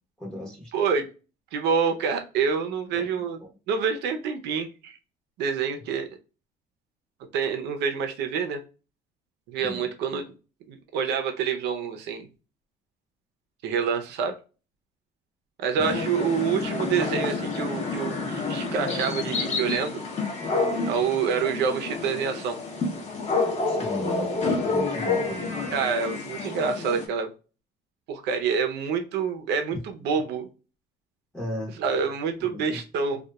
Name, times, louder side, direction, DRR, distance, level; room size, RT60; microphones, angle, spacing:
voice 1, 0.2-0.7 2.9-3.5 9.6-9.9 15.8-16.0 23.7-25.8 31.3-31.8 32.4-32.8, equal, 5° left, -3 dB, 0.8 m, -37 dB
voice 2, 0.7-1.1 1.5-3.4 3.7-5.0 5.4-6.1 7.3-8.6 9.5-10.3 10.7-12.3 13.6-14.3 15.6-20.0 20.9-22.6 25.7-27.3 28.1-30.5 31.8-33.2, right 6 dB, 85° right, 6 dB, 0.6 m, -27 dB
sound 1, 15.8-27.1, left 3 dB, 40° left, 0.8 m, -29 dB
2.8 x 2.3 x 2.2 m, 0.33 s
cardioid pair, 110°, 17 cm